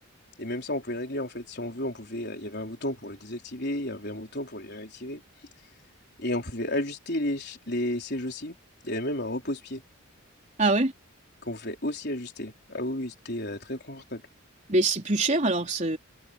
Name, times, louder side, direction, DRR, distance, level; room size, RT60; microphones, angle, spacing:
voice 1, 0.4-5.2 6.2-8.6 8.8-9.8 11.5-14.2, left 1 dB, 50° left, 4.5 m, -32 dB
voice 2, 10.6-10.9 14.7-16.0, right 2 dB, 35° right, 4.1 m, -24 dB
head